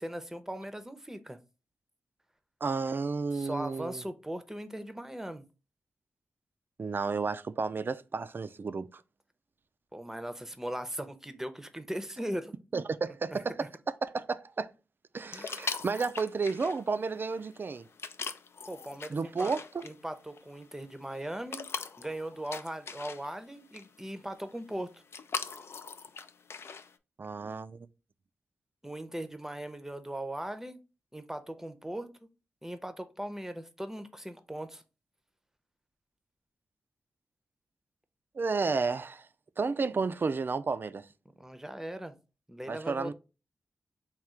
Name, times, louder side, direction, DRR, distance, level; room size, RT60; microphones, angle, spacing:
voice 1, 0.0-1.4 3.3-5.4 9.9-12.5 13.3-13.7 15.3-15.5 18.7-19.5 19.8-21.6 22.0-25.0 28.8-30.8 31.1-32.1 32.6-34.8 41.4-42.1 42.5-43.1, right 1 dB, 10° right, 0.6 m, -39 dB
voice 2, 2.6-4.0 6.8-9.0 12.7-13.7 14.0-14.7 15.1-17.8 19.1-19.8 27.2-27.9 38.4-39.3 39.6-41.0 42.7-43.1, right 4 dB, 45° right, 0.4 m, -32 dB
sound 1, 15.3-27.0, left 5 dB, 60° left, 0.4 m, -42 dB
3.6 x 2.3 x 4.4 m
cardioid pair, 50°, 5 cm